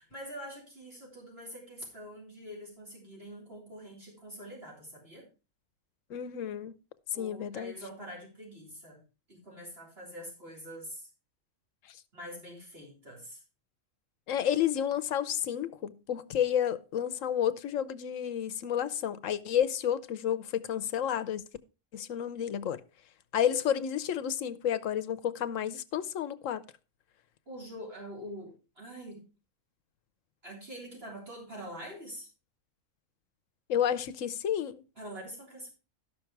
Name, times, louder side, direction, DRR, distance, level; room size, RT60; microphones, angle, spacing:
voice 1, 0.0-5.3 7.1-9.0 9.3-11.1 12.1-13.4 27.5-29.2 30.4-32.3 35.0-35.7, equal, 50° right, 3.8 m, -45 dB
voice 2, 6.1-6.7 7.2-7.7 11.9-12.0 14.3-21.4 21.9-22.8 23.3-26.6 33.7-34.8, left 9 dB, 75° left, 1.1 m, -31 dB
12.5 x 6.1 x 4.6 m
omnidirectional pair, 1.3 m